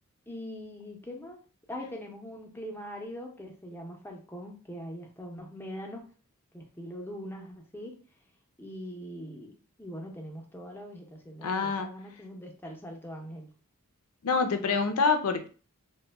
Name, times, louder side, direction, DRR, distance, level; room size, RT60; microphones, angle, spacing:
voice 1, 0.3-1.4 1.7-6.1 6.5-8.0 8.6-13.5, equal, 10° left, 0.6 m, -42 dB
voice 2, 11.4-11.9 14.2-15.5, left 4 dB, 85° left, 0.5 m, -26 dB
2.9 x 2.2 x 3.3 m
head